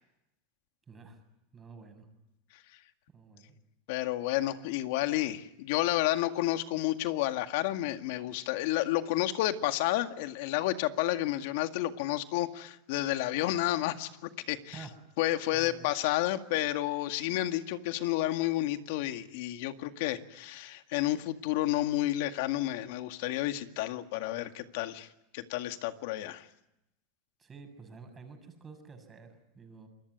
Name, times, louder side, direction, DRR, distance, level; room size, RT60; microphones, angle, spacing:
voice 1, 0.9-1.2 1.5-2.1 3.1-3.6 14.7-14.9 15.5-15.9 27.4-29.9, right 4 dB, 20° right, 6 dB, 7.0 m, -49 dB
voice 2, 3.9-14.9 15.2-25.1 25.3-26.5, left 15 dB, 70° left, 7 dB, 2.0 m, -31 dB
27.5 x 22.5 x 9.6 m, 0.89 s
supercardioid pair, 135°, 0 cm